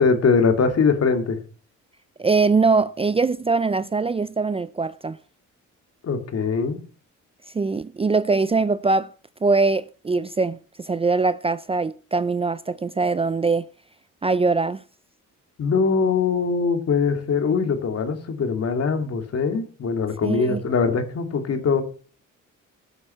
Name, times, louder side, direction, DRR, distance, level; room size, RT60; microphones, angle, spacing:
voice 1, 0.0-1.4 6.0-6.8 15.6-21.8, left 5 dB, 55° left, 2.5 m, -22 dB
voice 2, 2.2-5.2 7.5-9.1 9.4-13.6 14.2-14.8 20.2-20.6, right 4 dB, 20° right, 0.5 m, -22 dB
14.0 x 7.9 x 5.8 m
cardioid pair, 90°, 30 cm